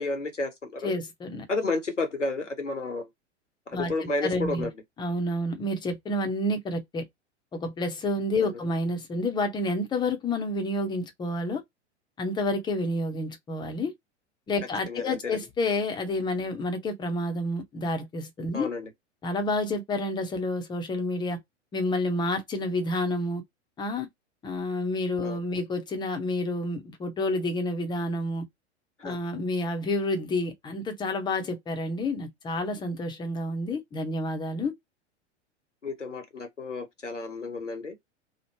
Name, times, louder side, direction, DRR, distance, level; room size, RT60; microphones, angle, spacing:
voice 1, 0.0-0.9 1.5-3.1 3.7-4.7 8.4-8.6 14.9-15.4 18.5-18.9 25.2-25.4 29.0-29.2 35.8-37.9, left 3 dB, 90° left, 0.9 m, -31 dB
voice 2, 0.8-1.5 3.7-4.7 5.0-7.1 7.5-11.6 12.2-13.9 14.5-18.7 19.2-21.4 21.7-23.4 23.8-24.1 24.4-28.5 29.0-34.7, left 2 dB, 10° left, 0.6 m, -29 dB
3.0 x 2.0 x 3.0 m
figure-of-eight pair, 95°, 35 cm